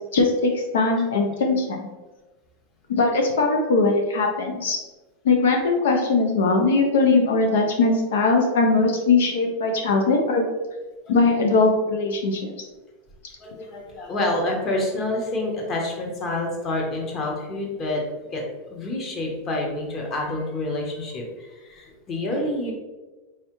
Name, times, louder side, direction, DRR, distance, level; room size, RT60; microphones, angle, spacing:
voice 1, 0.1-1.8 3.0-4.8 5.2-10.5 11.1-12.4, left 3 dB, 90° left, 2 dB, 0.5 m, -20 dB
voice 2, 13.4-18.0 18.3-22.7, left 1 dB, 30° left, 0 dB, 1.0 m, -28 dB
3.5 x 3.1 x 3.0 m, 1.2 s
supercardioid pair, 130°, 0 cm